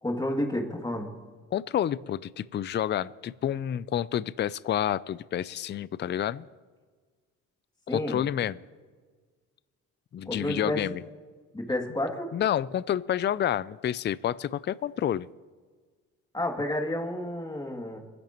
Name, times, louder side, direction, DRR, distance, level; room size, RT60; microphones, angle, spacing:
voice 1, 0.0-1.1 7.9-8.2 10.3-10.9 11.5-12.3 16.3-18.0, left 1 dB, 15° left, 1 dB, 2.5 m, -30 dB
voice 2, 1.5-6.5 7.9-8.6 10.1-11.0 12.3-15.3, left 10 dB, 35° left, 18 dB, 0.4 m, -29 dB
26.5 x 10.5 x 3.0 m, 1.5 s
cardioid pair, 90°, 30 cm